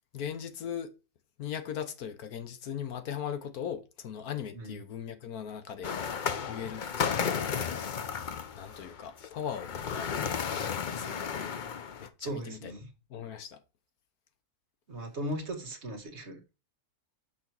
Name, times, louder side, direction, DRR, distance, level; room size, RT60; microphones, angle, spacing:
voice 1, 0.1-0.9 1.4-6.2 6.5-7.4 8.5-10.1 10.4-11.2 11.8-13.6, left 8 dB, 75° left, 1.4 m, -39 dB
sound 1, 5.8-12.1, left 6 dB, 50° left, 0.5 m, -33 dB
voice 2, 12.2-12.9 14.9-16.4, right 1 dB, 50° right, 1.5 m, -37 dB
6.3 x 6.0 x 4.5 m
omnidirectional pair, 1.6 m